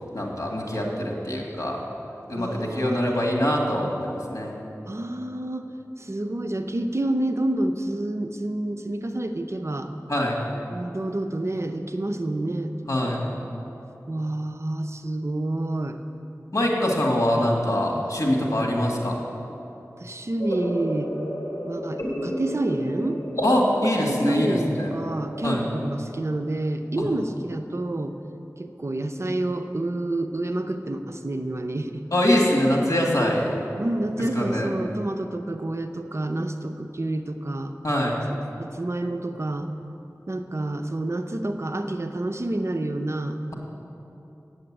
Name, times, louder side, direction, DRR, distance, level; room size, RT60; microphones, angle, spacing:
voice 1, 0.1-1.8 2.3-4.5 10.1-10.4 12.9-13.2 16.5-19.2 23.4-24.9 25.4-25.6 32.1-33.5 34.3-34.7 37.8-38.1, left 1 dB, 60° left, -1 dB, 1.9 m, -23 dB
voice 2, 2.3-3.2 4.9-5.7 6.0-9.9 10.7-12.7 13.0-13.2 14.1-16.0 17.9-18.4 20.0-21.1 21.7-23.2 24.0-28.2 28.6-32.0 33.8-37.7 38.6-39.7 40.3-43.4, right 1 dB, 50° right, 7 dB, 0.6 m, -28 dB
sound 1, 20.4-25.5, equal, 45° left, 2.6 m, -31 dB
8.0 x 7.8 x 8.7 m, 2.9 s
wide cardioid pair, 50°, 6 cm